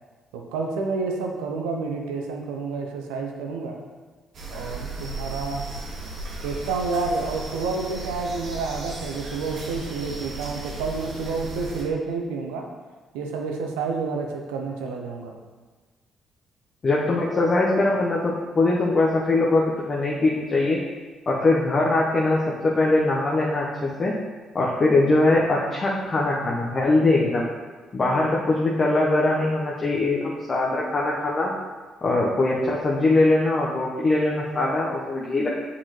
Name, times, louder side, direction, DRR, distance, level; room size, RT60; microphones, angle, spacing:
voice 1, 0.5-3.8 4.5-5.6 6.4-12.7 13.1-15.4, right 4 dB, 75° right, 2 dB, 0.7 m, -29 dB
sound 1, 4.3-11.8, right 2 dB, 55° right, 1.3 m, -35 dB
voice 2, 16.8-20.8 21.3-24.1 24.5-27.5 27.9-31.5 32.0-35.5, left 2 dB, 40° left, -3 dB, 0.8 m, -22 dB
7.7 x 4.2 x 3.0 m, 1.3 s
hypercardioid pair, 45°, 0 cm